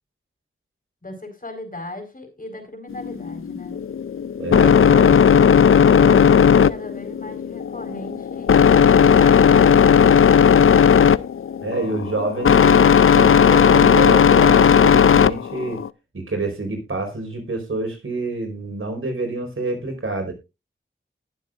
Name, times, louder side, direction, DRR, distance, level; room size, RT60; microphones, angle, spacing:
voice 1, 1.0-3.8 5.5-10.8, left 1 dB, 45° left, 6 dB, 4.5 m, -37 dB
sound 1, 2.9-15.9, left 7 dB, 85° left, 0.4 m, -15 dB
voice 2, 4.4-5.1 11.6-15.8 16.1-20.3, right 2 dB, 80° right, 3 dB, 4.4 m, -27 dB
19.5 x 7.3 x 2.5 m, 0.25 s
wide cardioid pair, 60°, 21 cm